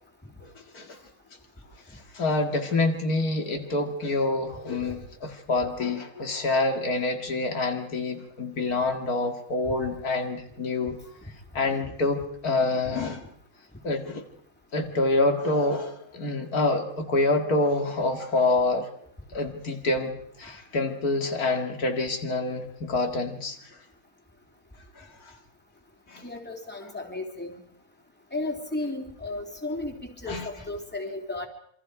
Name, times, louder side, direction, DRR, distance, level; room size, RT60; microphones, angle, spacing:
voice 1, 0.4-1.0 1.9-11.0 11.5-13.2 13.8-14.2 14.7-18.9 19.3-23.6 25.0-25.3 26.1-26.2 30.3-30.5, left 2 dB, 85° left, 4 dB, 2.6 m, -27 dB
voice 2, 26.2-27.6 28.3-31.5, left 2 dB, 5° left, 1 dB, 3.0 m, -34 dB
27.0 x 25.0 x 4.9 m, 0.66 s
omnidirectional pair, 1.5 m